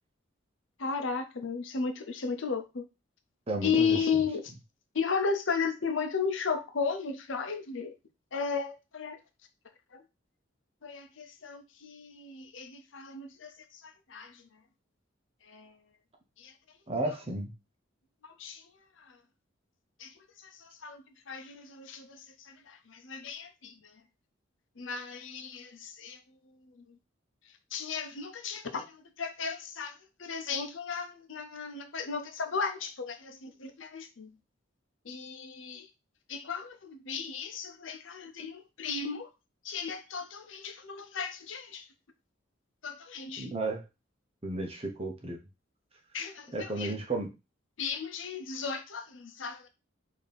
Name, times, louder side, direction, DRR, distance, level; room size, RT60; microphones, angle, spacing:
voice 1, 0.8-2.8 3.6-4.4 4.9-7.9 8.3-9.2 9.9-10.0 10.8-13.5 13.8-14.3 15.5-15.7 16.4-16.5 18.4-18.6 20.0-20.1 20.6-22.2 22.5-23.7 24.8-26.2 27.7-28.9 29.2-29.9 30.2-34.3 35.1-35.9 36.3-39.3 39.6-41.8 42.8-43.5 46.1-46.9 47.8-49.7, left 5 dB, 80° left, 6 dB, 0.7 m, -34 dB
voice 2, 3.5-4.1 16.9-17.5 43.4-43.8 44.4-45.4 46.5-47.3, right 2 dB, 30° right, 3 dB, 0.8 m, -33 dB
4.1 x 2.8 x 3.4 m, 0.26 s
head